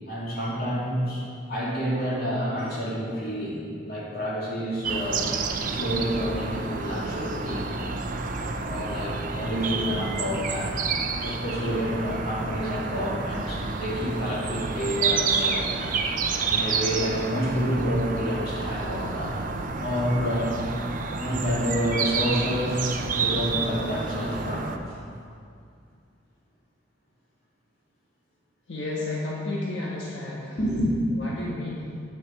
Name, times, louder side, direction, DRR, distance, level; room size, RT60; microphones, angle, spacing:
voice 1, 0.1-1.2 1.5-5.3 5.7-7.9 8.7-10.7 11.2-15.7 16.4-19.4 19.8-20.5 21.2-25.0 30.6-30.9, equal, 55° left, -6 dB, 2.7 m, -29 dB
sound 1, 4.8-24.8, right 4 dB, 45° right, 0.6 m, -29 dB
voice 2, 28.7-30.6 31.2-31.9, left 2 dB, 85° left, -5 dB, 1.4 m, -32 dB
9.3 x 7.2 x 6.0 m, 2.4 s
head